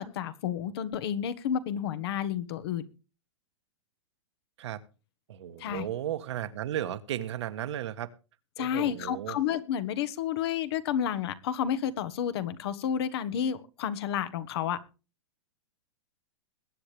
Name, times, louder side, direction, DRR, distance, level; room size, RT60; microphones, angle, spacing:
voice 1, 0.0-2.8 5.6-5.9 8.6-14.8, left 9 dB, 55° left, 1.5 m, -31 dB
voice 2, 5.3-8.1 8.6-9.4, right 11 dB, 70° right, 1.5 m, -35 dB
21.5 x 8.7 x 3.4 m
hypercardioid pair, 135°, 15 cm